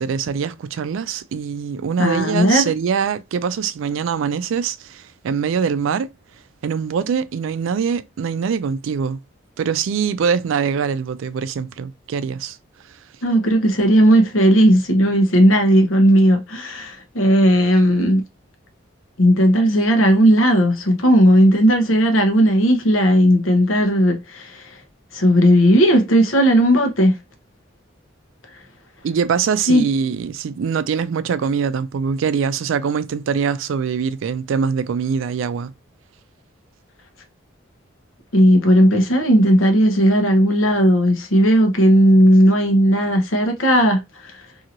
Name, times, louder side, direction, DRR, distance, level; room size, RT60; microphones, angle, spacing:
voice 1, 0.0-6.1 6.6-9.2 9.6-12.6 29.0-35.7, right 6 dB, 80° right, 0.3 m, -23 dB
voice 2, 2.0-2.6 13.2-18.2 19.2-24.7 25.1-27.2 29.7-29.8 38.3-44.3, equal, 90° left, 0.9 m, -15 dB
2.9 x 2.7 x 2.5 m
head